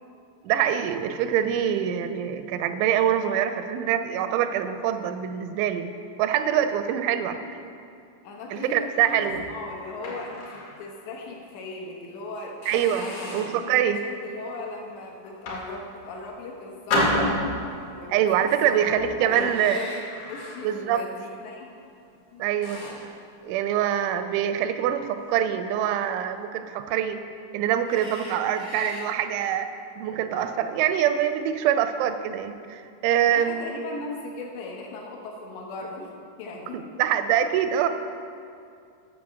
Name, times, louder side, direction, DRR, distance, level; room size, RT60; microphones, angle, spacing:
voice 1, 0.4-5.9 6.2-7.4 8.5-9.4 12.7-14.0 18.1-19.8 20.6-21.0 22.4-23.1 23.4-27.2 27.5-29.7 30.0-33.7 36.7-37.9, right 10 dB, 85° right, 9 dB, 2.9 m, -24 dB
voice 2, 8.2-12.6 13.0-17.4 17.9-19.9 20.3-21.7 22.3-22.4 30.1-30.5 33.3-36.1 36.4-36.8, left 3 dB, 75° left, -1 dB, 3.2 m, -38 dB
sound 1, 9.0-10.8 11.3-11.4 12.0-12.2 12.6-13.7 14.2-14.6 15.2-16.3 16.9-17.9 18.7-21.0 21.3-21.6 22.1-22.2 22.6-23.1, left 1 dB, 60° left, 1.6 m, -31 dB
sound 2, 14.8-15.0 19.4-20.0 21.3-21.4 22.4-23.2 25.1-25.3 27.8-29.1, left 1 dB, 25° left, 0.5 m, -41 dB
8.7 x 6.5 x 7.1 m, 2.4 s
omnidirectional pair, 5.3 m